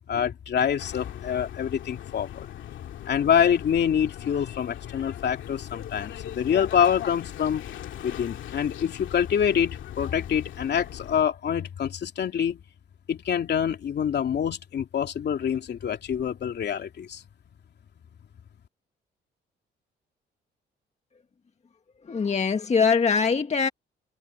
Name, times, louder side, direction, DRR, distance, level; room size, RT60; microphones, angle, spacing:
voice 1, 0.1-2.5 3.1-7.6 8.0-12.6 13.1-17.2, left 8 dB, 60° left, 2.9 m, -26 dB
sound 1, 0.8-11.2, left 11 dB, 75° left, 2.3 m, -39 dB
voice 2, 22.1-23.7, left 5 dB, 35° left, 1.7 m, -22 dB
cardioid pair, 90°, 20 cm